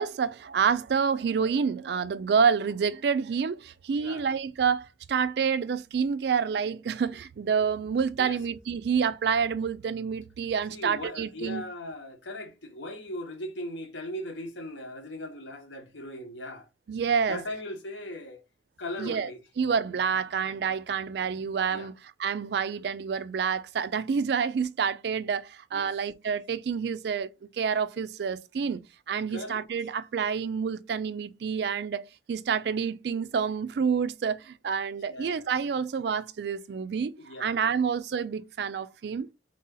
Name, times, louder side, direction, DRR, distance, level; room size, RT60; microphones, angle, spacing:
voice 1, 0.0-11.6 16.9-17.4 19.0-19.3 19.6-21.9 22.2-28.8 29.1-37.1 37.4-39.3, right 6 dB, 65° right, 0.3 m, -28 dB
voice 2, 10.7-16.7 17.3-18.4 18.8-19.4 21.7-21.9 25.7-25.9 29.3-29.6 35.1-35.5 37.2-37.8, left 1 dB, 90° left, 1.0 m, -38 dB
3.9 x 2.8 x 3.7 m
head